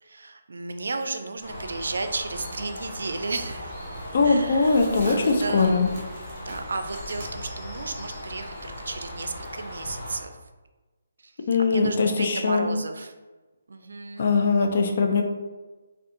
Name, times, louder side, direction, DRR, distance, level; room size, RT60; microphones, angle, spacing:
voice 1, 0.0-3.7 4.2-5.8 6.4-10.3 11.2-11.3 11.6-13.1 13.7-14.3, right 3 dB, 80° right, 7 dB, 0.4 m, -33 dB
Bird, 1.4-10.2, left 1 dB, 20° left, 0.8 m, -38 dB
sound 1, 3.5-7.3, right 1 dB, 30° right, 1.0 m, -42 dB
voice 2, 4.1-5.9 11.5-12.8 14.2-15.2, left 4 dB, 45° left, 3 dB, 0.4 m, -21 dB
2.6 x 2.3 x 3.7 m, 1.2 s
hypercardioid pair, 170°, 0 cm